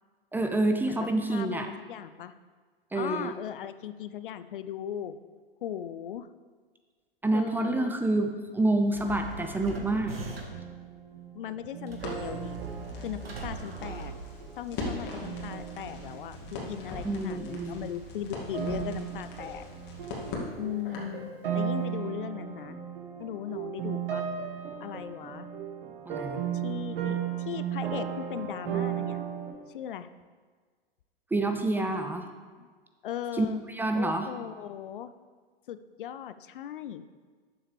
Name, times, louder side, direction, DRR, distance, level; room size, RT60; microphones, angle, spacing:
voice 1, 0.3-1.7 2.9-3.3 7.2-10.2 17.0-17.9 26.1-26.4 31.3-32.3 33.3-34.3, right 2 dB, 5° right, 5 dB, 0.5 m, -28 dB
voice 2, 0.8-2.3 2.9-5.2 5.6-6.3 7.3-8.0 11.3-12.6 13.0-14.1 14.6-19.7 20.6-22.8 23.2-24.3 24.8-25.5 26.5-29.2 29.7-30.1 32.6-32.7 33.0-33.6 33.9-35.1 35.7-37.1, left 10 dB, 60° left, 12 dB, 0.5 m, -38 dB
sound 1, 8.9-10.7 11.9-14.7, right 4 dB, 80° right, 1.4 m, -41 dB
sound 2, 10.2-17.0 17.3-17.6 18.5-29.5, right 9 dB, 60° right, 1.7 m, -36 dB
Crackle, 12.0-21.2, left 2 dB, 35° left, 2.2 m, -41 dB
12.0 x 7.3 x 3.3 m, 1.5 s
figure-of-eight pair, 100°, 30 cm